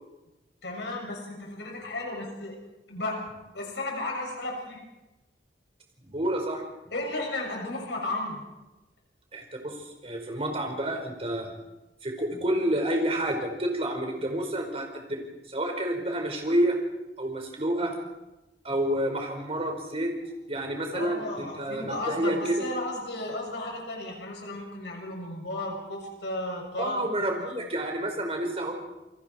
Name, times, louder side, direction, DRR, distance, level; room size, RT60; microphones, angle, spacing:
voice 1, 0.6-2.6 2.9-3.2 3.5-4.8 6.9-8.4 20.9-27.1, left 2 dB, 80° left, 0 dB, 7.1 m, -34 dB
voice 2, 6.0-6.6 9.3-11.5 12.0-15.2 15.5-16.8 17.2-17.9 18.6-20.1 20.5-22.5 26.8-28.7, right 1 dB, 35° right, 2 dB, 5.0 m, -29 dB
sound 1, 21.9-24.1, right 4 dB, 50° right, 6.0 m, -44 dB
29.0 x 23.0 x 4.6 m, 1.0 s
head